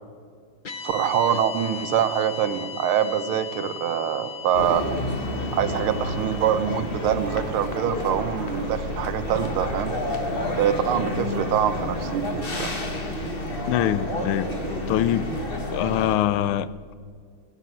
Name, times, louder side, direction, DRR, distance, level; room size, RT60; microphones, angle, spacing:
sound 1, 0.6-8.9, left 7 dB, 65° left, 0.4 m, -39 dB
voice 1, 0.8-4.9 5.5-10.0 10.6-12.7, right 9 dB, 85° right, 10 dB, 1.8 m, -24 dB
sound 2, 4.5-16.2, left 1 dB, 30° left, 1.6 m, -30 dB
sound 3, 5.6-16.3, right 2 dB, 35° right, 1.1 m, -42 dB
voice 2, 13.7-14.5 14.9-15.3 15.7-16.9, left 12 dB, 90° left, 17 dB, 1.5 m, -24 dB
16.5 x 10.0 x 7.5 m, 2.1 s
omnidirectional pair, 2.3 m